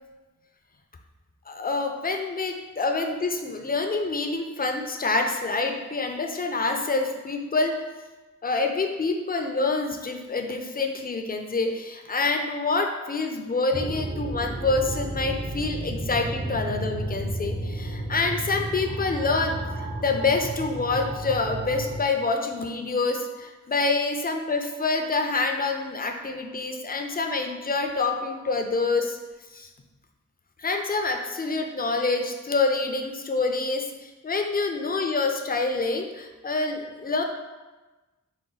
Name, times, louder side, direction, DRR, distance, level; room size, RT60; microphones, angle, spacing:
voice 1, 1.5-7.8 8.4-29.2 29.5-29.7 30.6-37.2, left 3 dB, 30° left, 4 dB, 0.4 m, -27 dB
sound 1, 13.7-22.0, right 2 dB, 25° right, 0.5 m, -32 dB
4.0 x 2.1 x 3.8 m, 1.2 s
wide cardioid pair, 45°, 32 cm